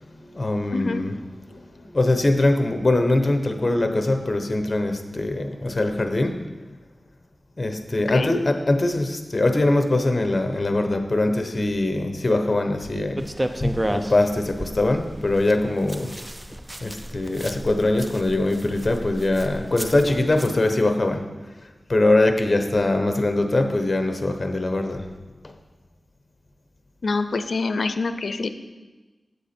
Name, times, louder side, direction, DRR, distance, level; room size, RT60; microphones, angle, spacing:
voice 1, 0.0-1.2 1.5-6.4 7.6-13.3 13.6-16.1 16.8-21.2 21.9-25.1 25.4-25.5, left 2 dB, 40° left, 6 dB, 0.9 m, -22 dB
voice 2, 0.7-1.0 8.1-8.3 27.0-28.5, left 3 dB, 70° left, 10 dB, 0.5 m, -25 dB
sound 1, 13.2-20.5, right 1 dB, 20° right, 0.5 m, -33 dB
8.3 x 8.1 x 4.4 m, 1.2 s
wide cardioid pair, 95°, 0 cm